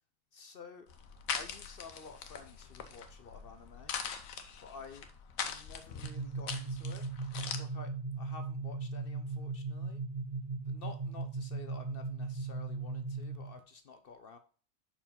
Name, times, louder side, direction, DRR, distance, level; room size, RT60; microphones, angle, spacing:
voice 1, 0.3-0.9 1.3-3.9 4.6-5.1 5.4-7.1 7.6-10.0 10.7-14.4, left 5 dB, 55° left, 9 dB, 0.7 m, -51 dB
sound 1, 0.9-7.6, left 7 dB, 85° left, 1.2 m, -42 dB
sound 2, 6.0-13.6, right 3 dB, 45° right, 0.6 m, -38 dB
5.8 x 4.6 x 5.6 m, 0.41 s
omnidirectional pair, 1.4 m